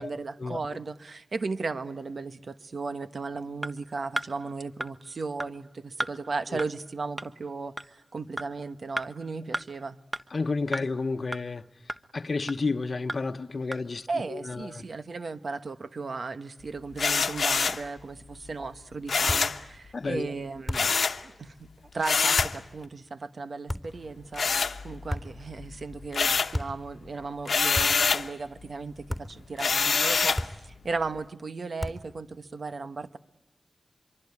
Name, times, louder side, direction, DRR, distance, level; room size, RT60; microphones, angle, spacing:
voice 1, 0.0-10.0 14.1-24.5 24.8-33.2, right 4 dB, 70° right, 1.2 m, -36 dB
sound 1, 3.6-3.7 4.2-4.3 4.8-4.9 5.4-5.5 6.0-6.1 6.6-6.7 7.2-7.3 7.8-7.9 8.4-8.5 9.0-9.1 9.5-9.6 10.1-10.2 10.7-10.8 11.3-11.4 11.9-12.0 12.5-12.6 13.1-13.2 13.7-13.8, right 1 dB, 35° right, 1.4 m, -32 dB
voice 2, 10.3-11.7 12.1-14.8 19.9-20.3, left 3 dB, 65° left, 0.9 m, -31 dB
sound 2, 17.0-17.9 19.1-19.6 20.7-21.2 22.0-22.6 24.3-25.2 25.6-26.6 27.5-28.3 29.6-30.5, left 5 dB, 90° left, 1.0 m, -25 dB
sound 3, 19.3-19.6 20.7-21.0 22.4-22.6 23.7-24.1 25.1-25.5 26.5-26.9 27.7-28.1 29.1-29.4 30.4-30.8 31.8-32.2, left 1 dB, 5° left, 3.6 m, -34 dB
25.5 x 24.0 x 9.7 m
cardioid pair, 45°, 0 cm